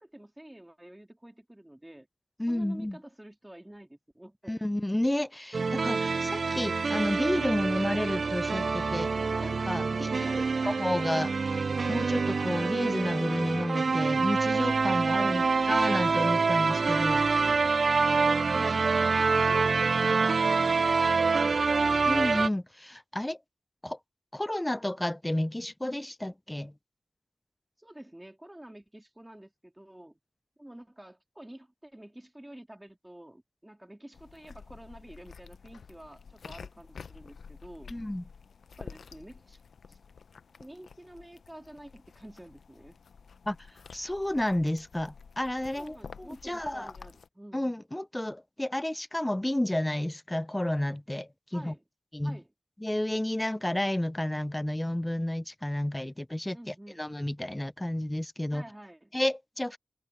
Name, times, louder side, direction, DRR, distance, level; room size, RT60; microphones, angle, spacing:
voice 1, 0.0-2.1 2.5-4.6 10.2-10.5 27.8-30.2 30.6-38.0 38.8-39.6 39.9-40.0 40.6-43.0 45.7-47.7 51.5-51.8 52.2-52.5 56.5-57.1 58.5-59.1, right 1 dB, 10° right, 3.1 m, -49 dB
voice 2, 2.4-3.0 4.5-9.1 9.4-11.3 11.9-17.2 22.1-23.4 23.8-24.0 24.3-26.7 37.9-38.2 43.5-43.6 43.9-46.9 47.5-51.7 52.1-52.4 52.8-58.6 59.1-59.8, left 1 dB, 10° left, 0.4 m, -31 dB
sound 1, 5.5-22.5, right 4 dB, 55° right, 0.4 m, -26 dB
sound 2, 34.1-47.3, left 5 dB, 85° left, 0.7 m, -50 dB
wide cardioid pair, 110°, 0 cm